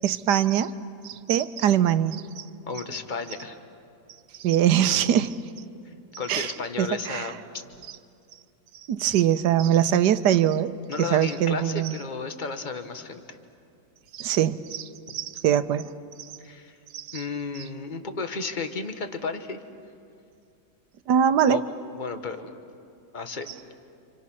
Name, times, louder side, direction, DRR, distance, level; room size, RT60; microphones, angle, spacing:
voice 1, 0.0-0.7 1.0-2.4 4.4-5.4 6.3-6.5 6.8-7.3 8.9-10.7 11.0-12.0 14.1-15.8 16.9-17.2 21.1-21.6, right 10 dB, 80° right, 12 dB, 1.4 m, -22 dB
voice 2, 2.7-3.6 6.2-7.6 10.9-13.4 16.4-16.7 17.1-19.6 21.5-21.7 21.9-22.6 23.1-23.7, left 4 dB, 30° left, 8 dB, 1.4 m, -33 dB
29.5 x 27.0 x 6.2 m, 2.5 s
omnidirectional pair, 1.8 m